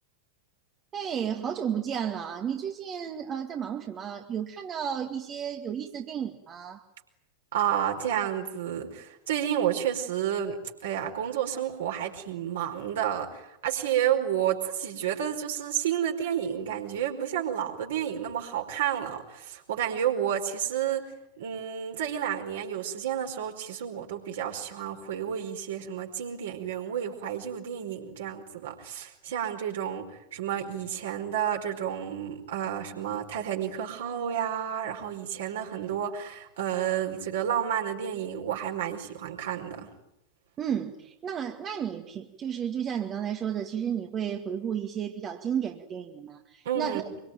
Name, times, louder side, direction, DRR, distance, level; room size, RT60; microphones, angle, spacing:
voice 1, 0.9-6.8 40.6-47.0, right 8 dB, 30° right, 4 dB, 2.1 m, -32 dB
voice 2, 7.5-39.9 46.6-47.1, right 10 dB, 60° right, 3 dB, 4.6 m, -31 dB
25.5 x 24.5 x 9.2 m, 0.85 s
figure-of-eight pair, 90°, 0 cm